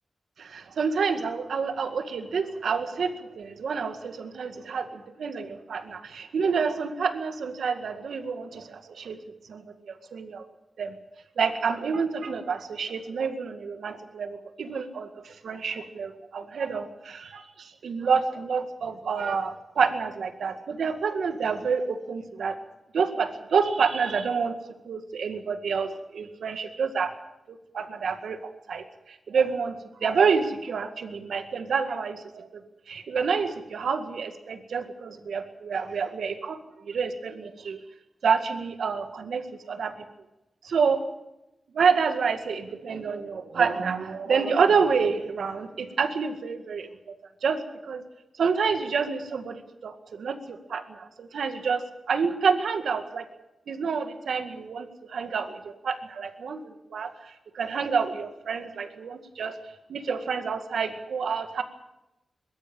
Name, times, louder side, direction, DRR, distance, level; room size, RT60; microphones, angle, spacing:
voice 1, 0.4-9.2 9.5-10.4 10.8-10.9 11.4-22.6 22.9-24.6 24.9-27.1 27.7-28.4 28.7-28.8 29.3-29.8 30.0-32.6 32.9-36.6 36.8-37.8 38.2-39.4 39.7-39.9 40.6-41.0 41.7-46.9 47.4-48.0 48.4-53.3 53.7-59.5 59.9-61.6, right 5 dB, 90° right, 7 dB, 2.0 m, -28 dB
22.5 x 13.5 x 9.0 m, 0.93 s
wide cardioid pair, 110°, 0 cm